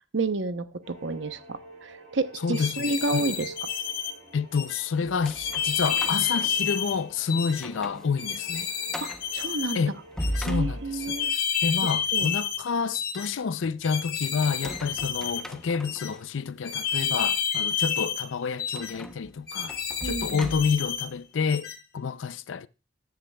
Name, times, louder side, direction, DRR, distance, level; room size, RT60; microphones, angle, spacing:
voice 1, 0.1-3.5 9.0-9.8 10.4-11.3 11.8-12.3 20.0-20.5, right 3 dB, 70° right, 0.8 m, -30 dB
sound 1, 0.8-11.3, right 1 dB, 40° right, 6.4 m, -49 dB
voice 2, 2.4-3.2 4.3-8.7 9.7-9.9 10.4-11.2 11.6-19.7 20.0-22.7, left 5 dB, 80° left, 0.5 m, -29 dB
sound 2, 2.5-4.1 4.5-4.8 5.4-7.0 7.3-7.6 8.2-9.8 10.2-10.5 11.0-12.6 12.9-13.3 13.8-15.4 15.8-16.1 16.6-18.3 18.6-18.9 19.5-21.1 21.5-21.8, left 7 dB, 55° left, 1.7 m, -30 dB
sound 3, 5.0-7.1 7.5-8.1 8.4-8.5 8.9-9.3 9.9-11.3 14.4-16.2 16.8-17.0 18.7-21.0, equal, 5° left, 0.7 m, -37 dB
14.5 x 10.5 x 2.3 m
head